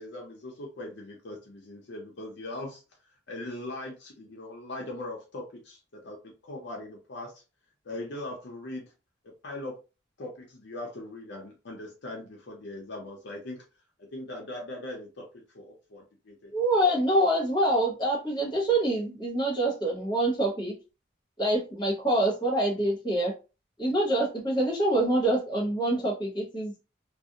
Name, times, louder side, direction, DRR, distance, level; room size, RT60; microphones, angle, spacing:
voice 1, 0.0-2.8 3.3-7.4 7.8-8.8 9.2-9.8 10.2-13.6 14.0-16.5, left 1 dB, 65° left, 0 dB, 0.6 m, -40 dB
voice 2, 16.5-20.7 21.4-23.3 23.8-26.7, right 1 dB, 25° left, -2 dB, 1.0 m, -25 dB
2.4 x 2.0 x 2.8 m, 0.31 s
head